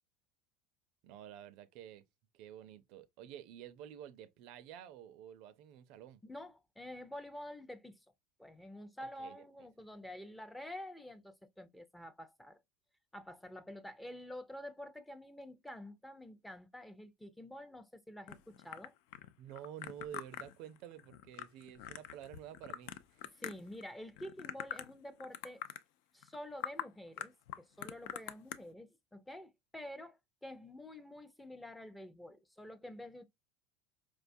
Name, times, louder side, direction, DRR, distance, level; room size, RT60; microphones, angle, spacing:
voice 1, 1.0-2.0 2.3-6.2 9.2-9.4 19.4-23.2, right 10 dB, 60° right, 0.4 m, -50 dB
voice 2, 6.2-8.0 8.4-12.6 13.1-18.9 23.4-25.6 26.1-33.2, left 1 dB, 5° left, 0.4 m, -48 dB
sound 1, 18.3-23.8 24.2-25.0 25.2-25.8 26.2-26.4 26.6-26.9 27.2-28.6, left 11 dB, 70° left, 0.4 m, -44 dB
4.6 x 2.2 x 2.6 m
supercardioid pair, 120°, 0 cm